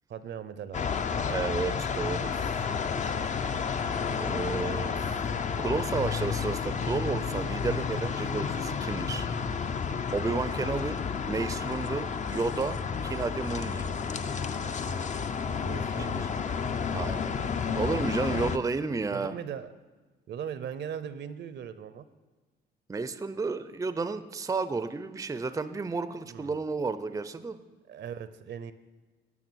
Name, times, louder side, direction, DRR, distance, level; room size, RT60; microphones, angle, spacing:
voice 1, 0.1-0.8 15.6-16.3 19.0-19.7 20.3-22.1 26.3-26.6 27.9-28.7, right 8 dB, 60° right, 13 dB, 0.6 m, -39 dB
sound 1, 0.7-18.6, left 6 dB, 40° left, 0.5 m, -31 dB
voice 2, 1.3-2.3 4.1-5.0 5.6-9.3 10.1-13.9 15.7-15.9 16.9-17.4 17.8-19.3 22.9-27.6, right 4 dB, 15° right, 12 dB, 0.5 m, -32 dB
11.0 x 5.8 x 6.2 m, 1.3 s
cardioid pair, 90°, 20 cm